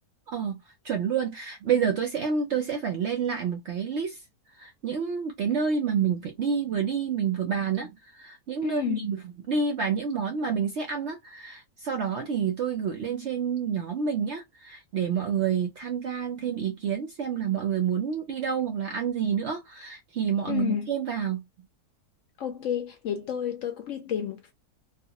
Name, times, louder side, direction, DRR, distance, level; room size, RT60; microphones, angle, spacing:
voice 1, 0.3-4.2 4.6-9.2 9.5-21.4, right 7 dB, 65° right, 0.7 m, -28 dB
voice 2, 8.6-9.1 20.5-20.9 22.4-24.5, left 9 dB, 70° left, 0.8 m, -30 dB
2.4 x 2.4 x 2.7 m
omnidirectional pair, 1.7 m